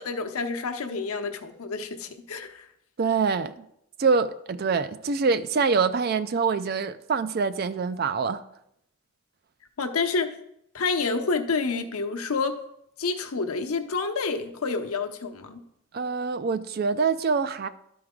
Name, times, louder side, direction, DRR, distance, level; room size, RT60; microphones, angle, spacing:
voice 1, 0.0-2.7 9.8-10.4 10.7-12.6 13.0-15.6, left 4 dB, 85° left, 0.8 m, -28 dB
voice 2, 3.0-3.7 4.0-8.4 15.9-17.7, right 5 dB, 45° right, 0.3 m, -25 dB
12.0 x 4.6 x 3.7 m
head